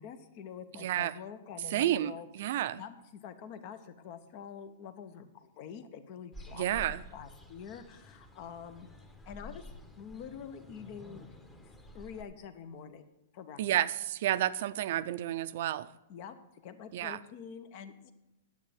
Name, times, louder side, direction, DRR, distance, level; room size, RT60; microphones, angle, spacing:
voice 1, 0.0-8.9 9.3-11.2 11.7-13.1 13.3-13.8 16.1-16.4 16.6-18.1, left 7 dB, 50° left, 11 dB, 0.9 m, -46 dB
voice 2, 0.8-1.2 1.7-2.8 6.5-7.0 13.6-15.9 16.9-17.2, right 12 dB, 60° right, 15 dB, 0.5 m, -31 dB
sound 1, 6.3-12.2, left 1 dB, 15° left, 1.2 m, -50 dB
9.5 x 7.8 x 5.1 m, 0.96 s
hypercardioid pair, 120°, 0 cm